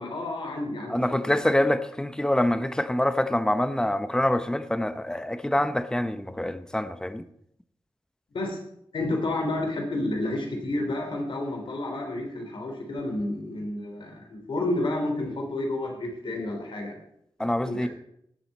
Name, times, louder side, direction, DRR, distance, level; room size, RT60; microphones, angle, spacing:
voice 1, 0.0-1.4 8.3-8.6 8.9-17.0 17.6-17.9, left 2 dB, 70° left, 3.2 m, -30 dB
voice 2, 0.9-7.2 17.4-17.9, left 1 dB, 10° left, 0.8 m, -25 dB
18.5 x 7.6 x 4.2 m
wide cardioid pair, 100°, 9 cm